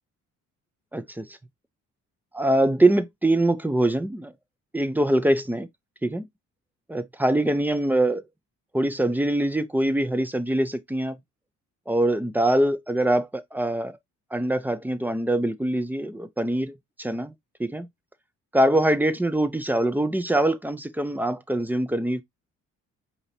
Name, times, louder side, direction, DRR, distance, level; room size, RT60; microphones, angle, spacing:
voice 1, 0.9-1.4 2.3-4.3 4.7-5.7 6.0-6.3 6.9-8.2 8.7-11.2 11.9-14.0 14.3-17.3 17.6-17.9 18.5-22.2, right 1 dB, 5° right, 0.5 m, -23 dB
4.9 x 2.9 x 2.7 m
cardioid pair, 90°, 30 cm